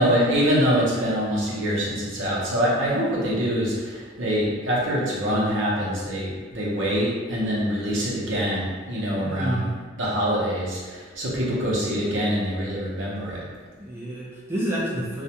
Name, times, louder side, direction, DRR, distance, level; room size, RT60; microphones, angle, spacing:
voice 1, 0.0-9.6 9.9-13.4, equal, 80° right, -6 dB, 0.8 m, -24 dB
voice 2, 9.2-9.7 13.8-15.2, right 1 dB, 15° right, -7 dB, 0.4 m, -29 dB
2.3 x 2.1 x 2.8 m, 1.5 s
head